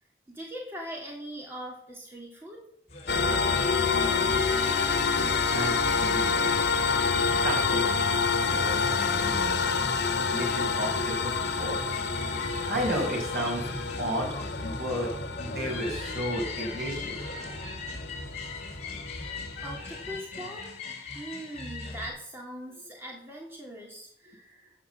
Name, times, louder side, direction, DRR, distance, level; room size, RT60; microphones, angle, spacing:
voice 1, 0.3-2.6 19.6-20.7 21.1-24.7, equal, 15° right, -2 dB, 3.0 m, -41 dB
sound 1, 2.9-22.1, left 4 dB, 35° left, 6.2 m, -41 dB
sound 2, 3.1-20.2, left 5 dB, 70° left, 2.3 m, -28 dB
voice 2, 5.5-6.5 7.4-8.2 8.5-11.9 12.7-15.1 15.4-17.2 22.7-22.8, equal, 55° right, 1 dB, 5.6 m, -33 dB
13.5 x 9.8 x 7.4 m, 0.68 s
head